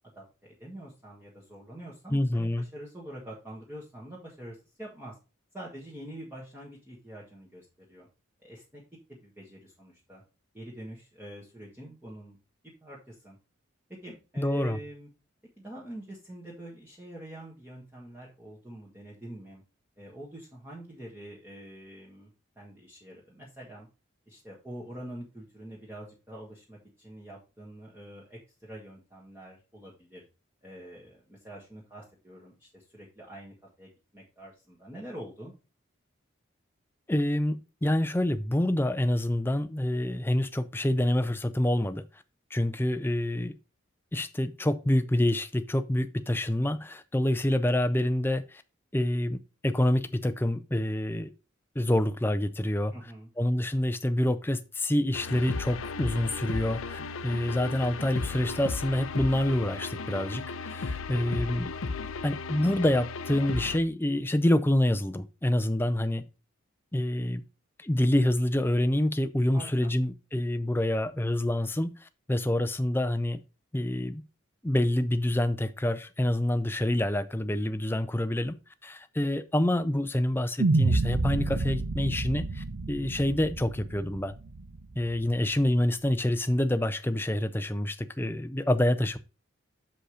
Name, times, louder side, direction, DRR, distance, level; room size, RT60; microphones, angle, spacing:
voice 1, 0.0-5.2 5.5-8.1 8.4-8.8 9.1-10.2 10.5-12.4 12.8-13.4 14.0-15.1 15.6-19.6 20.0-23.9 24.3-30.2 30.6-35.5 52.9-53.3 69.5-69.9, right 1 dB, 10° right, 1.6 m, -45 dB
voice 2, 2.1-2.6 14.4-14.8 37.1-42.0 42.5-43.5 44.1-48.6 48.9-51.3 51.8-52.9 53.4-60.4 60.7-61.7 62.2-66.2 66.9-67.4 67.8-73.4 73.7-74.2 74.6-78.6 78.8-84.3 85.0-89.2, left 1 dB, 10° left, 0.5 m, -27 dB
sound 1, 55.1-63.8, left 4 dB, 80° left, 0.6 m, -35 dB
sound 2, 80.6-84.9, right 3 dB, 75° right, 0.6 m, -28 dB
6.3 x 5.2 x 5.0 m
head